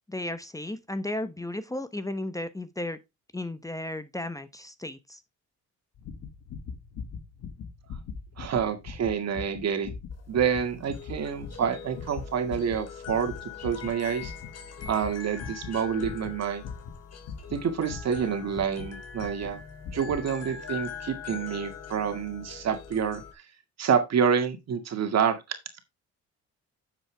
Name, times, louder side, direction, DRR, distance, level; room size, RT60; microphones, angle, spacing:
voice 1, 0.0-3.0 3.3-5.2, left 1 dB, 10° left, 0.9 m, -34 dB
sound 1, 6.0-18.9 19.2-19.5 19.8-20.2 20.5-20.6, left 5 dB, 75° left, 2.2 m, -41 dB
voice 2, 8.4-9.9 10.3-13.3 13.6-14.3 14.9-16.6 17.5-19.6 19.9-23.2 23.8-25.6, right 7 dB, 60° right, 2.1 m, -28 dB
sound 2, 10.1-23.3, left 7 dB, 55° left, 2.9 m, -43 dB
9.8 x 7.3 x 3.4 m
cardioid pair, 90°, 30 cm